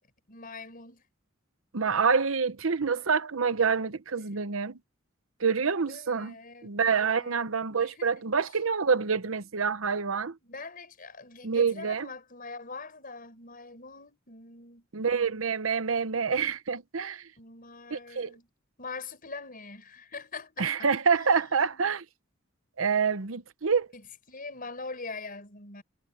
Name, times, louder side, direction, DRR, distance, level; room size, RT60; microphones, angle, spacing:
voice 1, 0.3-1.0 5.9-7.4 7.8-8.3 10.4-14.9 17.4-18.5 18.8-21.9 23.9-25.8, left 3 dB, 45° left, 5.5 m, -43 dB
voice 2, 1.7-4.8 5.4-6.3 6.6-10.4 11.4-12.1 14.9-17.3 17.9-18.3 20.6-22.0 22.8-23.9, right 5 dB, 90° right, 0.9 m, -27 dB
head